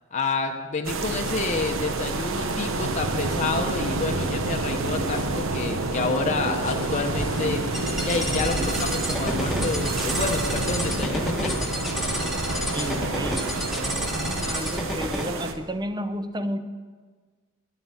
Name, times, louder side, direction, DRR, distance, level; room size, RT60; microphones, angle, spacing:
voice 1, 0.1-7.6 8.0-11.5, left 3 dB, 35° left, 3 dB, 0.8 m, -29 dB
sound 1, 0.8-15.5, right 2 dB, 65° right, 0.9 m, -28 dB
sound 2, 5.1-13.0, left 3 dB, 70° left, 1.1 m, -40 dB
sound 3, 7.7-15.2, equal, ahead, 1.4 m, -30 dB
voice 2, 12.7-16.6, right 1 dB, 20° right, 9 dB, 0.6 m, -32 dB
11.0 x 7.5 x 8.4 m, 1.5 s
head